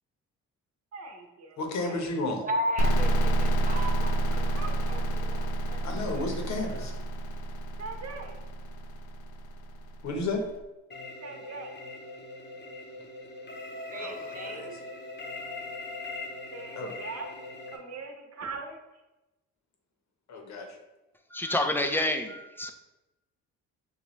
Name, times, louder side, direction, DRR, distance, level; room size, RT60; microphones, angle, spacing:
voice 1, 0.9-2.0 4.3-5.0 7.8-8.4 11.2-11.7 16.5-17.3 17.7-18.8, right 4 dB, 55° right, 2 dB, 0.9 m, -41 dB
voice 2, 1.6-2.4 5.8-6.9 10.0-10.4 14.0-14.2 14.5-14.7 16.8-16.9 20.3-20.8, left 2 dB, 65° left, 3 dB, 1.0 m, -32 dB
voice 3, 2.4-5.8 6.1-6.4 6.8-6.9 13.9-14.8, equal, 25° right, 2 dB, 0.8 m, -36 dB
sound 1, 2.8-10.3, right 1 dB, 85° left, 0.5 m, -28 dB
sound 2, 10.9-17.8, left 2 dB, 35° left, 0.8 m, -41 dB
voice 4, 21.3-22.7, left 1 dB, 5° left, 6 dB, 0.4 m, -28 dB
6.6 x 2.3 x 3.0 m, 1.0 s
cardioid pair, 90°, 30 cm